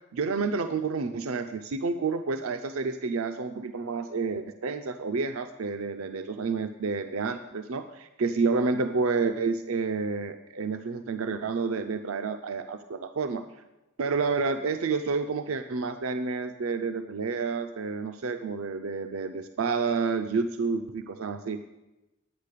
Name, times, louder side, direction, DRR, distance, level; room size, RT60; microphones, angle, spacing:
voice 1, 0.1-13.4 14.0-21.6, right 4 dB, 85° right, 8 dB, 0.5 m, -29 dB
10.0 x 9.0 x 6.6 m, 1.0 s
head